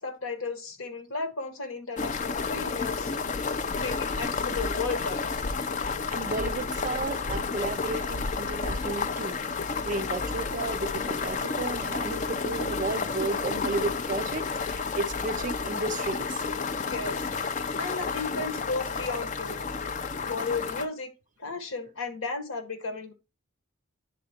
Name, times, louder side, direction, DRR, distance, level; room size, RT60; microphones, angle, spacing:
voice 1, 0.0-3.1 3.7-5.2 16.9-19.7 20.1-21.1 21.4-23.1, left 3 dB, 70° left, 1.2 m, -34 dB
sound 1, 2.0-20.9, left 4 dB, 35° left, 0.4 m, -31 dB
voice 2, 5.8-9.4 9.8-16.4, right 3 dB, 35° right, 0.4 m, -33 dB
10.0 x 3.9 x 2.8 m
head